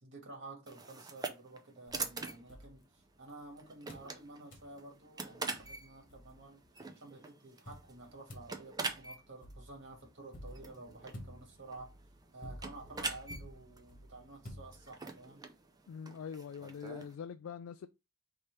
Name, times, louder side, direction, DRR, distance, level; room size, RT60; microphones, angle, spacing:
voice 1, 0.0-6.6 6.9-11.9 12.3-15.5, right 2 dB, 60° right, 1.6 m, -51 dB
sound 1, 0.7-17.2, right 4 dB, 20° right, 0.5 m, -45 dB
sound 2, 1.9-3.4 3.9-4.2 4.5-4.8 5.3-5.4 5.6-6.7 7.7-15.2, equal, 40° left, 1.3 m, -52 dB
voice 2, 15.9-17.9, left 7 dB, 70° left, 0.3 m, -44 dB
5.2 x 2.9 x 3.1 m
head